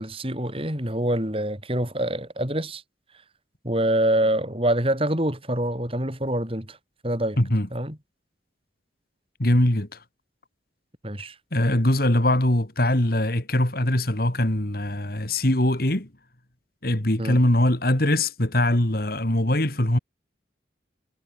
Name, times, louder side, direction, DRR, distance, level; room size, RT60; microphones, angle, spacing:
voice 1, 0.0-2.8 3.6-6.8 7.0-7.4 7.7-8.0 11.0-11.3 17.2-17.4, right 1 dB, 30° right, 5.0 m, -25 dB
voice 2, 7.4-7.7 9.4-9.9 11.5-16.1 16.8-20.0, left 1 dB, 50° left, 2.7 m, -22 dB
head